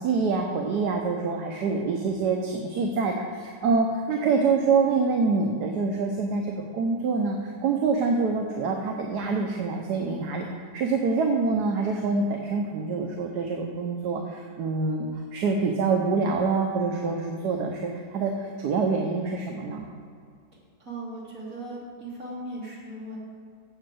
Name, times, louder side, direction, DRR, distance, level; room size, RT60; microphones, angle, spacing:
voice 1, 0.0-10.4 10.7-19.9, right 4 dB, 75° right, 2 dB, 1.4 m, -26 dB
voice 2, 20.8-23.2, right 1 dB, 55° right, -7 dB, 3.6 m, -38 dB
7.6 x 7.3 x 7.7 m, 2.2 s
omnidirectional pair, 1.8 m